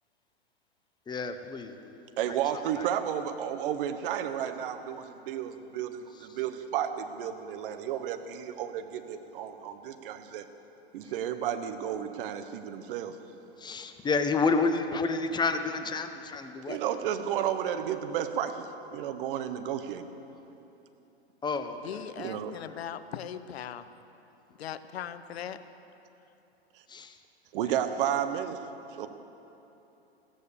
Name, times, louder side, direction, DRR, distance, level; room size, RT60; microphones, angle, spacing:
voice 1, 1.1-2.0 2.3-2.4 2.8-2.9 6.1-6.4 11.0-11.1 13.6-16.8 21.4-22.0 22.5-22.7 26.9-27.2 27.7-27.8, left 4 dB, 15° left, 8 dB, 0.9 m, -30 dB
voice 2, 2.2-10.5 10.9-13.1 16.7-20.1 22.2-22.5 27.5-28.6 28.9-29.1, right 9 dB, 55° right, 9 dB, 1.2 m, -32 dB
voice 3, 21.8-23.9 24.6-25.6, left 9 dB, 70° left, 12 dB, 0.9 m, -39 dB
15.5 x 13.0 x 6.9 m, 3.0 s
hypercardioid pair, 110°, 32 cm